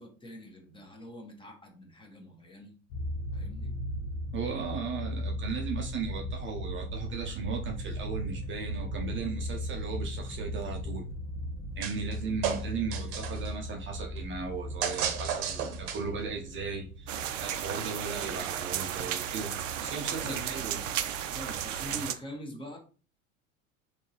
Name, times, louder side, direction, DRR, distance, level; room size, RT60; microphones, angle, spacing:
voice 1, 0.0-2.8 3.3-3.7 19.9-21.0 21.3-22.8, equal, 15° left, 1.2 m, -44 dB
sound 1, 2.9-21.6, equal, 60° left, 0.9 m, -38 dB
voice 2, 4.3-11.1 11.8-19.5 19.8-20.8, right 5 dB, 30° right, 0.7 m, -37 dB
sound 2, 11.8-12.2 12.4-13.5 14.8-16.2, right 8 dB, 55° right, 0.9 m, -32 dB
sound 3, 17.1-22.1, right 10 dB, 75° right, 0.5 m, -34 dB
3.6 x 2.8 x 2.9 m
hypercardioid pair, 80°, 38 cm